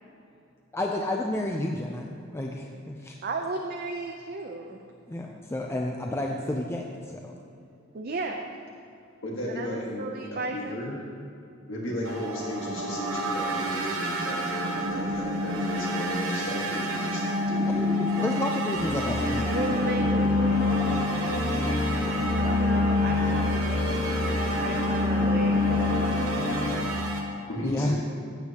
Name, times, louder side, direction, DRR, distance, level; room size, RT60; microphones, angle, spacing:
voice 1, 0.7-3.2 5.1-7.3 17.6-20.1 27.6-27.9, left 1 dB, 15° left, 0.5 m, -31 dB
voice 2, 3.2-4.8 7.9-8.4 9.5-11.0 12.2-12.3 19.3-20.9 22.3-23.6 24.1-27.0, right 3 dB, 50° right, 0.6 m, -35 dB
voice 3, 9.2-10.0 10.5-10.9 11.7-17.2 17.5-18.4 27.5-28.0, left 1 dB, 75° left, 1.8 m, -34 dB
sound 1, 12.0-27.2, left 2 dB, 90° right, 1.2 m, -28 dB
voice 4, 17.6-18.0, equal, 5° right, 1.1 m, -55 dB
sound 2, 18.7-26.8, left 1 dB, 40° left, 1.6 m, -29 dB
15.0 x 8.1 x 2.9 m
head